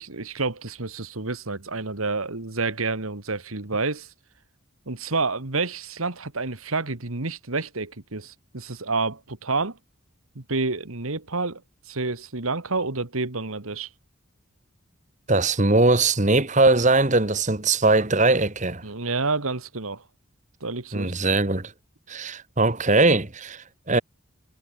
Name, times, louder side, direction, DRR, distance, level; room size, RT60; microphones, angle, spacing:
voice 1, 0.0-4.1 4.9-9.8 10.4-11.6 11.9-13.9 18.8-20.0 20.6-21.1, right 3 dB, 85° right, 2.1 m, -29 dB
voice 2, 15.3-18.8 20.9-21.7 22.1-24.0, right 2 dB, 35° right, 1.7 m, -20 dB
head